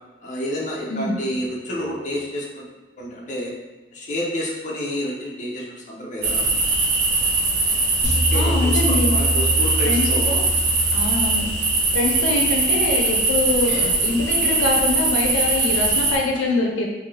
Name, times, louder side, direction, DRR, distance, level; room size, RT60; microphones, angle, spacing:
voice 1, 0.2-2.6 3.0-3.5 3.9-6.6 8.3-10.3 13.6-13.8, left 1 dB, 40° left, -4 dB, 0.6 m, -29 dB
sound 1, 6.2-16.2, right 3 dB, 60° right, 0.6 m, -21 dB
sound 2, 8.0-12.4, equal, 30° right, 1.2 m, -25 dB
voice 2, 8.3-9.1 9.8-10.4 10.9-11.5 11.9-16.9, left 2 dB, 90° left, 0 dB, 0.5 m, -24 dB
2.6 x 2.5 x 3.1 m, 1.2 s
head